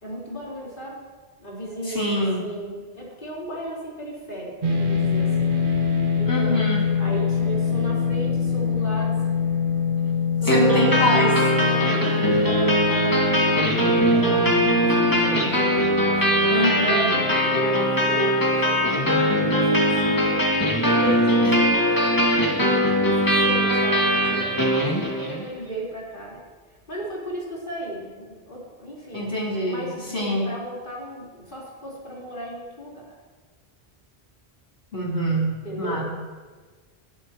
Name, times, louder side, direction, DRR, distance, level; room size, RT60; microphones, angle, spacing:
voice 1, 0.0-1.0 1.4-5.5 6.2-6.6 7.0-9.4 10.4-11.2 11.6-20.4 21.0-22.6 23.0-26.4 26.9-29.3 29.7-33.1 35.6-36.0, right 1 dB, 55° left, -6 dB, 4.5 m, -35 dB
voice 2, 1.8-2.5 6.3-6.9 10.4-11.4 12.0-12.3 16.5-17.1 21.4-21.6 29.1-30.5 34.9-36.0, equal, 80° left, -5 dB, 3.9 m, -25 dB
sound 1, 4.6-19.0, left 6 dB, 55° right, 1.3 m, -26 dB
sound 2, 10.5-25.4, equal, 20° left, 2.0 m, -21 dB
21.5 x 11.0 x 3.1 m, 1.4 s
omnidirectional pair, 1.1 m